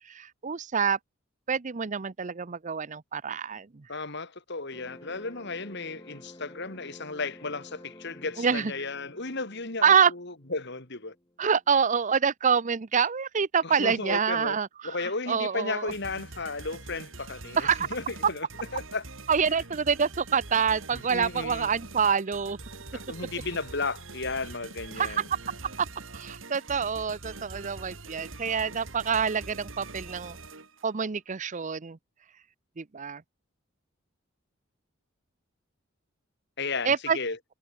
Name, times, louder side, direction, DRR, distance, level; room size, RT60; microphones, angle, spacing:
voice 1, 0.1-1.0 1.5-3.8 8.4-8.7 9.8-10.1 11.4-14.9 15.3-15.9 17.6-17.9 19.3-22.6 25.0-25.2 25.8-25.9 26.1-30.4 30.8-32.0 32.8-33.2 36.9-37.2, right 6 dB, 40° right, 0.6 m, -26 dB
voice 2, 3.9-11.2 13.6-14.6 14.8-18.5 18.7-19.0 19.4-19.5 20.9-21.7 22.9-25.3 36.6-37.4, left 3 dB, 60° left, 3.5 m, -34 dB
sound 1, 4.7-11.7, left 1 dB, 20° left, 2.4 m, -51 dB
sound 2, 15.9-30.9, right 3 dB, 70° right, 3.3 m, -44 dB
head